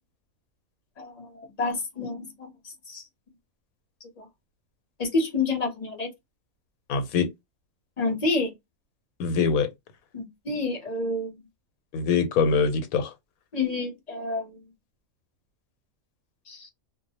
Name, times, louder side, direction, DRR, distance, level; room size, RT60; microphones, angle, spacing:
voice 1, 1.0-2.5 2.9-3.0 4.2-4.3 5.0-6.1 8.0-8.5 10.1-11.4 13.5-14.6 16.5-16.7, left 3 dB, 35° left, 0.7 m, -29 dB
voice 2, 6.9-7.3 9.2-9.7 11.9-13.1, left 5 dB, 90° left, 1.1 m, -23 dB
2.3 x 2.1 x 2.6 m
omnidirectional pair, 1.5 m